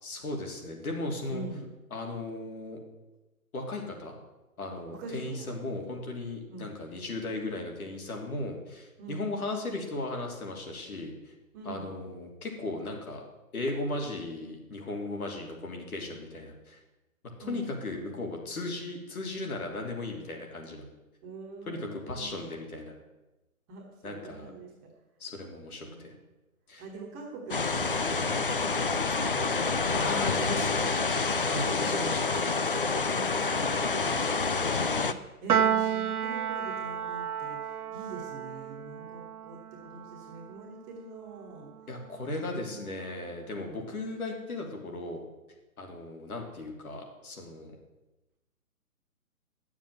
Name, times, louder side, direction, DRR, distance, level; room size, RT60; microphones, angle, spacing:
voice 1, 0.0-1.4 1.9-2.8 3.5-4.1 4.6-11.3 11.6-13.2 13.5-16.8 17.4-20.9 21.7-22.9 24.0-24.5 25.2-26.1 26.7-26.8 29.9-31.0 31.5-32.3 33.1-33.2 34.3-34.5 41.9-45.2 45.8-47.7, left 2 dB, 75° left, 1 dB, 3.2 m, -36 dB
voice 2, 1.3-1.6 4.9-5.5 6.5-6.7 9.0-9.2 11.5-11.9 17.4-17.6 21.2-22.4 23.7-24.7 25.8-26.1 26.8-30.9 31.7-32.4 32.9-41.7 42.4-42.9 43.5-43.9, right 3 dB, 10° right, -2 dB, 1.1 m, -44 dB
sound 1, 27.5-35.1, left 4 dB, 40° left, 0.4 m, -28 dB
Piano, 35.5-42.0, right 8 dB, 85° right, 0.9 m, -32 dB
11.0 x 7.2 x 7.7 m, 1.0 s
hypercardioid pair, 165°, 44 cm